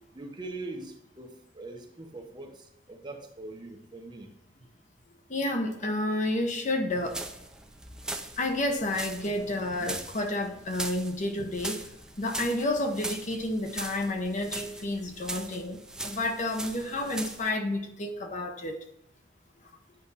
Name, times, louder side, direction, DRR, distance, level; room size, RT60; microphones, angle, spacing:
voice 1, 0.1-4.3, right 2 dB, 25° right, 2 dB, 1.1 m, -42 dB
voice 2, 5.3-7.2 8.4-11.8 12.2-18.8, left 1 dB, 40° left, 5 dB, 0.9 m, -30 dB
sound 1, 6.9-17.5, right 2 dB, 5° right, 0.6 m, -40 dB
9.1 x 5.1 x 4.1 m, 0.80 s
head